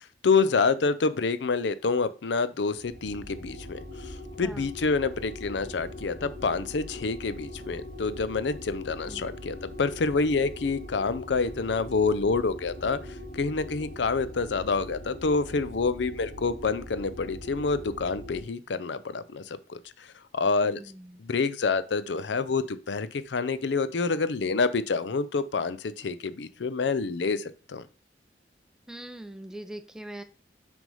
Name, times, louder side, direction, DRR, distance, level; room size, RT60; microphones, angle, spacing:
voice 1, 0.0-13.0 13.3-20.1 20.3-20.8 21.2-27.8, left 4 dB, 85° left, 14 dB, 0.5 m, -27 dB
sound 1, 2.6-18.4, equal, 65° left, 1.6 m, -42 dB
Organ, 3.7-14.6 15.7-15.9, left 5 dB, 50° left, 1.8 m, -48 dB
voice 2, 20.6-21.2 28.9-30.2, right 1 dB, 5° right, 9 dB, 0.5 m, -42 dB
6.1 x 3.5 x 5.4 m, 0.36 s
head